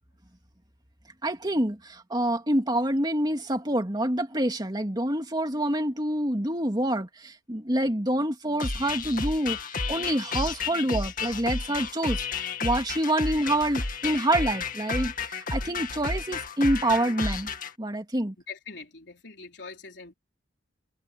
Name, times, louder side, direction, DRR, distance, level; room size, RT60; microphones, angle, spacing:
voice 1, 1.2-17.5 17.8-18.3, right 1 dB, 25° right, 2.7 m, -27 dB
sound 1, 8.6-17.7, left 4 dB, 50° left, 2.1 m, -32 dB
voice 2, 18.5-20.1, left 4 dB, 70° left, 4.2 m, -43 dB
head